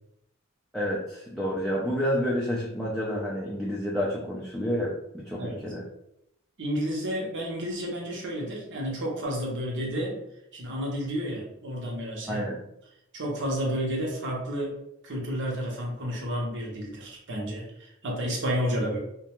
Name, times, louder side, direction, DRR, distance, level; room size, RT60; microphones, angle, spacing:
voice 1, 0.7-5.8 12.3-12.6, equal, ahead, -6 dB, 0.4 m, -29 dB
voice 2, 6.6-10.2 10.5-12.6 13.1-19.0, equal, 55° right, -1 dB, 0.8 m, -31 dB
2.4 x 2.2 x 2.9 m, 0.79 s
head